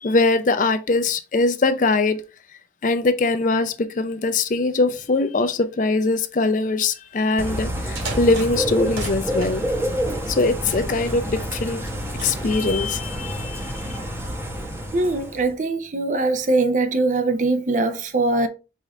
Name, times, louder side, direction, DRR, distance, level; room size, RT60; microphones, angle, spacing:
voice 1, 0.0-2.2 2.8-9.6 10.3-11.8 12.2-14.0, left 3 dB, 45° left, 0.4 m, -22 dB
Bird / Rain, 7.4-15.5, equal, 15° right, 0.8 m, -28 dB
sound 1, 7.8-9.6 10.3-11.2 11.7-12.5, right 2 dB, 80° right, 1.8 m, -36 dB
voice 2, 14.9-18.5, right 2 dB, 40° right, 0.5 m, -21 dB
4.9 x 2.5 x 4.0 m
head